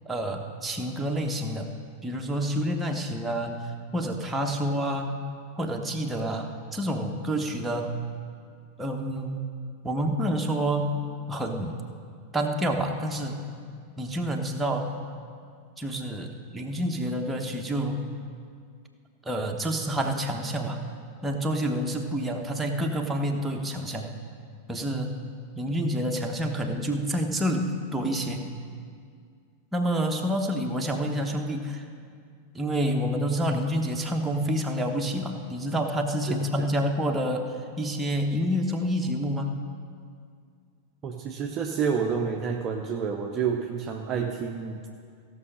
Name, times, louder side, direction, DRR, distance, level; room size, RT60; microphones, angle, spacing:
voice 1, 0.0-1.7 2.0-5.2 5.6-8.0 8.8-9.4 9.8-11.8 12.3-13.4 14.0-14.9 15.8-18.1 19.2-20.8 21.2-24.1 24.7-25.2 25.6-28.5 29.7-31.8 32.5-39.6, equal, 10° right, 1 dB, 1.1 m, -28 dB
voice 2, 36.3-36.7 41.0-44.9, right 6 dB, 30° right, 2 dB, 0.7 m, -29 dB
16.0 x 6.3 x 5.6 m, 2.2 s
figure-of-eight pair, 90°, 0 cm